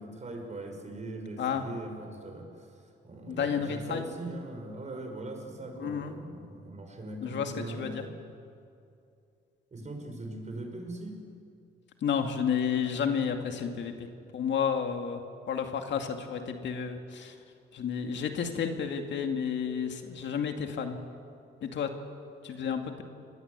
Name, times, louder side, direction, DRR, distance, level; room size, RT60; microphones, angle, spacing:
voice 1, 0.0-8.2 9.7-11.2, right 2 dB, 35° right, 4 dB, 5.7 m, -41 dB
voice 2, 3.3-4.1 5.8-6.1 7.2-8.0 12.0-14.1 14.3-15.2 15.5-17.4 17.7-21.0 21.6-21.9 22.4-23.0, left 7 dB, 65° left, 5 dB, 2.3 m, -31 dB
26.5 x 20.5 x 8.2 m, 2.5 s
cardioid pair, 90°, 20 cm